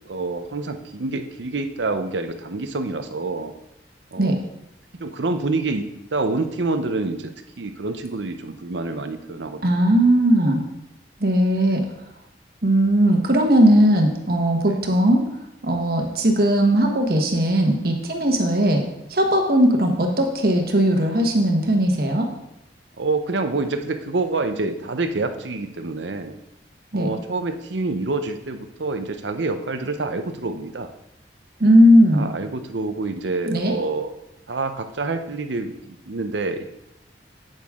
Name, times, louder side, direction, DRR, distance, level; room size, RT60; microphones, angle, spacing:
voice 1, 0.1-3.5 4.1-4.4 4.9-9.9 11.6-11.8 14.7-14.8 23.0-26.3 26.9-30.9 32.1-34.1 34.5-36.6, right 3 dB, 90° right, 8 dB, 0.8 m, -27 dB
voice 2, 9.6-10.6 11.2-11.8 12.6-15.2 15.6-18.8 19.1-22.3 26.9-27.1 31.6-32.3 33.5-33.7, equal, 55° right, 2 dB, 1.3 m, -18 dB
8.3 x 8.1 x 3.7 m, 0.86 s
head